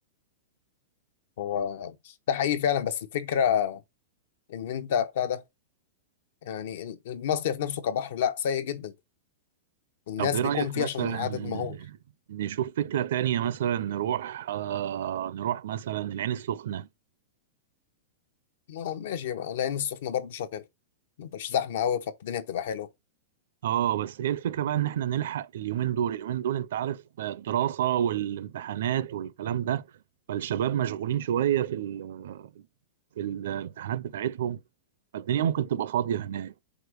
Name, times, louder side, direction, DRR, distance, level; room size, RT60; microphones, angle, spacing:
voice 1, 1.4-2.0 2.3-3.8 4.5-5.4 6.4-8.9 10.1-11.8 18.7-20.6 21.2-22.9, left 9 dB, 55° left, 0.9 m, -29 dB
voice 2, 10.2-12.0 12.3-16.9 23.6-29.8 30.3-32.5 33.2-34.6 35.1-36.5, right 10 dB, 60° right, 0.6 m, -29 dB
5.0 x 5.0 x 6.3 m
supercardioid pair, 180°, 0 cm